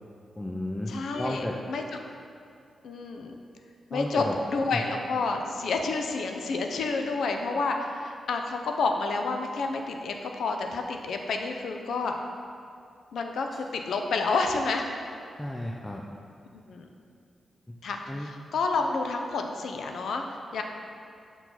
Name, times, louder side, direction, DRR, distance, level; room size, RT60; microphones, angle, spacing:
voice 1, 0.4-1.5 3.9-4.3 4.7-4.8 15.4-16.0 18.1-18.3, left 1 dB, 10° left, -1 dB, 0.4 m, -33 dB
voice 2, 0.9-1.8 2.8-3.4 3.9-12.1 13.1-14.9 16.7-16.9 17.8-20.2 20.5-20.6, left 3 dB, 80° left, 3 dB, 0.5 m, -29 dB
5.8 x 4.5 x 4.0 m, 2.5 s
wide cardioid pair, 135°, 0 cm